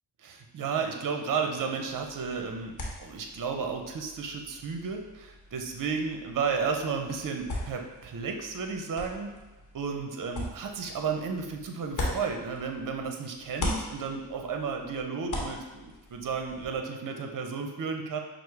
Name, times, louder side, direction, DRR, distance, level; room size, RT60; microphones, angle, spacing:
voice 1, 0.2-9.3 9.7-18.2, right 5 dB, 45° right, 4 dB, 0.6 m, -33 dB
sound 1, 1.9-13.1 13.4-16.8, left 1 dB, 45° left, 1.0 m, -40 dB
5.9 x 2.1 x 3.3 m, 1.1 s
cardioid pair, 55°, 44 cm